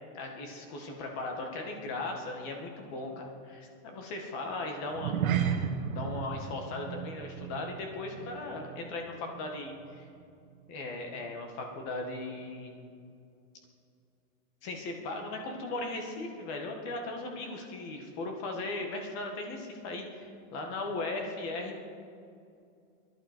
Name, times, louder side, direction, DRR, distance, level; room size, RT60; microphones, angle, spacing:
voice 1, 0.1-5.2 5.9-10.1 10.7-12.8 14.6-21.7, left 2 dB, 30° left, 3 dB, 1.9 m, -38 dB
sound 1, 4.9-9.5 9.8-10.1 10.6-10.7, right 8 dB, 85° right, 1.4 m, -34 dB
23.0 x 11.5 x 4.5 m, 2.5 s
supercardioid pair, 170°, 40 cm